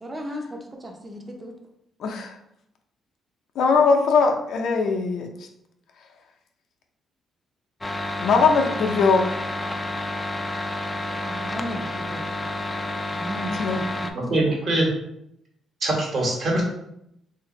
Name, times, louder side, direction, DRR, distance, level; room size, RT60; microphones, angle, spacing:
voice 1, 0.0-1.5 11.2-12.2 13.1-13.8 14.3-14.6, equal, 20° right, 2 dB, 0.6 m, -35 dB
voice 2, 2.0-2.4 3.6-5.3 8.2-9.3 13.5-13.8, left 4 dB, 70° left, 3 dB, 0.5 m, -20 dB
sound 1, 7.8-14.1, left 2 dB, 15° left, 0.3 m, -30 dB
voice 3, 14.1-14.9 15.8-16.6, right 1 dB, 50° right, -1 dB, 1.3 m, -23 dB
2.5 x 2.5 x 3.9 m, 0.78 s
cardioid pair, 90°, 0 cm